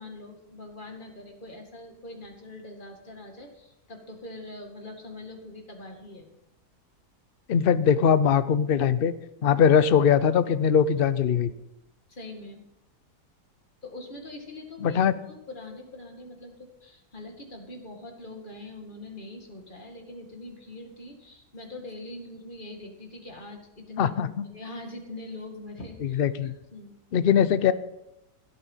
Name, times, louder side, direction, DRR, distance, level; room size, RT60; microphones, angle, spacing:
voice 1, 0.0-6.3 12.1-12.6 13.8-15.0 15.3-24.1 24.5-26.9, left 2 dB, 30° left, 2 dB, 2.4 m, -43 dB
voice 2, 7.5-9.1 9.4-11.5 14.8-15.1 24.0-24.5 26.0-26.5 27.1-27.7, left 7 dB, 50° left, 13 dB, 0.7 m, -21 dB
16.5 x 8.6 x 5.7 m, 0.86 s
omnidirectional pair, 1.6 m